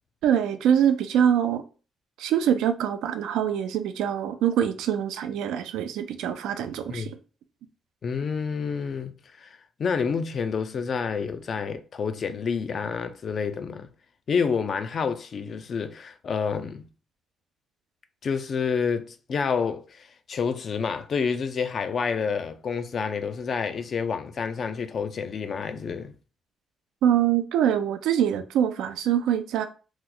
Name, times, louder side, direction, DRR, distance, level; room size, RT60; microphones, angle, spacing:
voice 1, 0.2-1.6 2.2-7.2 27.0-29.7, right 9 dB, 85° right, 0.4 m, -24 dB
voice 2, 8.0-13.9 14.3-16.9 18.2-26.1, left 6 dB, 50° left, 0.4 m, -29 dB
3.0 x 2.1 x 3.8 m
cardioid pair, 90°, 0 cm